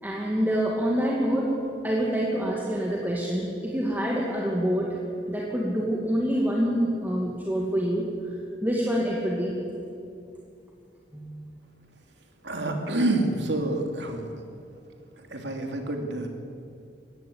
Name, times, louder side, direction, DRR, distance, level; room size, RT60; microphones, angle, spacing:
voice 1, 0.0-5.0 5.3-8.4 8.6-9.6 11.1-11.5, equal, 10° right, -3 dB, 2.3 m, -26 dB
voice 2, 12.4-14.2 15.3-16.3, right 2 dB, 80° right, 3 dB, 2.7 m, -27 dB
21.0 x 16.0 x 8.7 m, 2.5 s
head